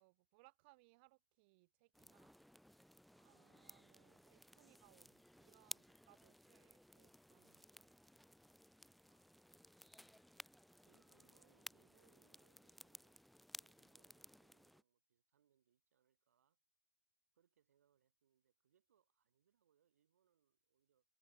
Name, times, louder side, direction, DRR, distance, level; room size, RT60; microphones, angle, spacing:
voice 1, 0.0-2.4 3.2-7.9, right 25 dB, 45° right, 0.7 m, -71 dB
sound 1, 1.9-14.8, equal, ahead, 0.4 m, -59 dB
voice 2, 3.1-3.9 9.1-10.5 10.9-16.6 17.3-21.0, right 9 dB, 75° right, 2.8 m, -80 dB
hypercardioid pair, 130°, 8 cm